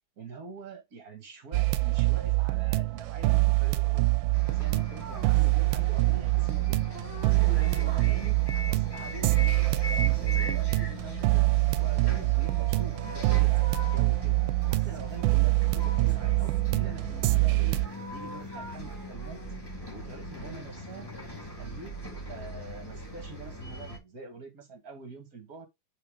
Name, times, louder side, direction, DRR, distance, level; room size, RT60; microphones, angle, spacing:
voice 1, 0.2-4.1 4.5-6.9 7.4-11.5 11.8-14.4 14.7-17.8 18.1-19.4 19.9-21.1 21.6-25.7, right 4 dB, 50° right, 2.4 m, -45 dB
cool swing., 1.5-17.9, right 22 dB, 90° right, 1.4 m, -25 dB
Bus, 4.3-24.0, left 2 dB, 10° left, 2.3 m, -41 dB
sound 1, 5.0-6.2 6.9-11.3 12.3-14.1 14.6-17.0 17.8-19.6, equal, 10° right, 0.9 m, -47 dB
5.8 x 4.1 x 5.1 m
omnidirectional pair, 2.1 m